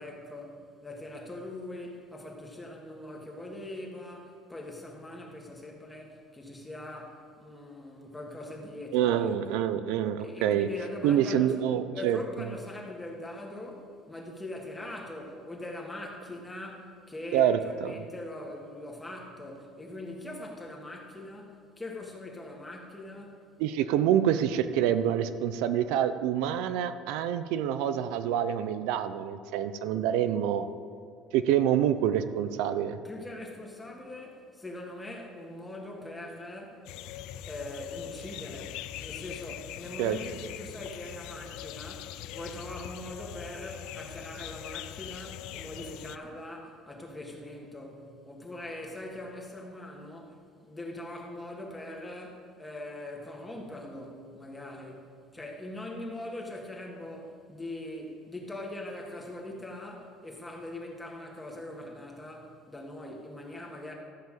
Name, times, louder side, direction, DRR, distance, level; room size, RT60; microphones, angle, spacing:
voice 1, 0.0-9.6 10.2-11.5 11.9-23.5 33.0-36.9 37.5-63.9, left 1 dB, 10° left, 0 dB, 1.7 m, -42 dB
voice 2, 8.9-10.7 11.0-12.5 17.3-17.9 23.6-30.7 31.3-33.0 40.0-40.2, right 10 dB, 80° right, 11 dB, 0.5 m, -27 dB
sound 1, 36.9-46.2, left 12 dB, 70° left, 0.4 m, -42 dB
13.0 x 5.6 x 7.5 m, 2.3 s
cardioid pair, 155°, 0 cm